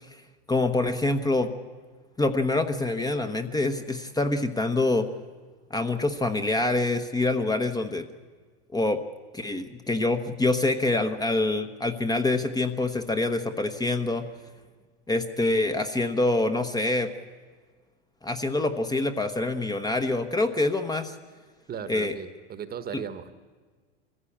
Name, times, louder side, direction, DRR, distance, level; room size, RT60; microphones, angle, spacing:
voice 1, 0.5-1.5 2.2-5.1 5.7-8.0 8.7-9.0 9.3-14.2 15.1-17.1 18.2-21.1 21.9-22.1, left 2 dB, 10° left, 8 dB, 1.1 m, -25 dB
voice 2, 21.7-23.3, right 7 dB, 30° right, 12 dB, 1.3 m, -36 dB
23.0 x 15.0 x 8.6 m, 1.5 s
hypercardioid pair, 110°, 33 cm